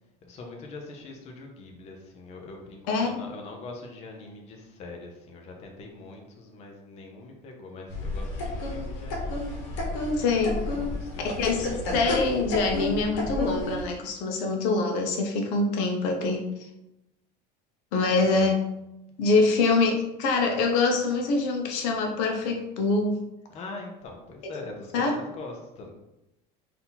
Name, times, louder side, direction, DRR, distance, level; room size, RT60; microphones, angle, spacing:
voice 1, 0.2-9.4 10.7-12.0 18.1-18.5 23.5-25.9, left 3 dB, 30° left, 2 dB, 0.6 m, -43 dB
sound 1, 7.9-13.8, left 2 dB, 60° left, 1.3 m, -31 dB
voice 2, 10.2-10.6 11.2-16.5 17.9-18.7 19.2-23.2 24.4-24.5 24.9-25.1, left 3 dB, 80° left, 3 dB, 0.8 m, -25 dB
3.9 x 2.8 x 4.0 m, 0.90 s
cardioid pair, 165°, 21 cm